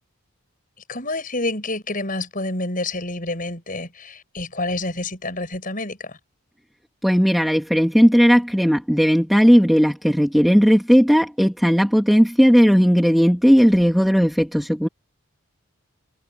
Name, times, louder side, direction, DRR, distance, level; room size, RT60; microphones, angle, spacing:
voice 1, 0.9-6.2, left 2 dB, 40° left, 7.3 m, -28 dB
voice 2, 7.0-14.9, equal, ahead, 1.9 m, -16 dB
head